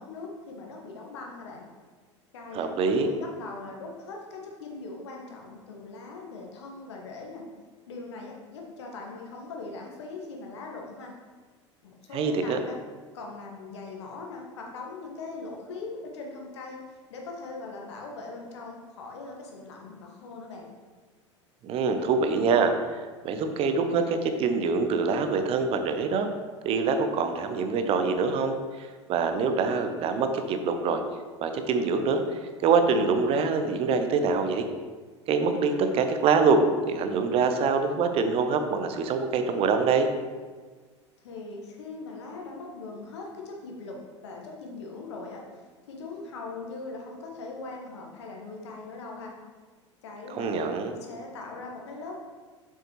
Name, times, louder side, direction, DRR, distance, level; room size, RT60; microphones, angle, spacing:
voice 1, 0.0-1.7 2.3-2.7 3.0-7.4 7.9-11.1 11.8-12.8 13.1-20.7 41.2-44.0 44.2-45.4 45.9-49.3 50.0-50.7 51.0-52.2, left 3 dB, 65° left, 0 dB, 1.4 m, -40 dB
voice 2, 2.5-3.1 12.1-12.6 21.6-26.3 26.6-31.0 31.4-34.7 35.3-40.1 50.3-51.0, right 4 dB, 40° right, 7 dB, 0.8 m, -25 dB
7.4 x 6.9 x 3.1 m, 1.4 s
figure-of-eight pair, 75°, 16 cm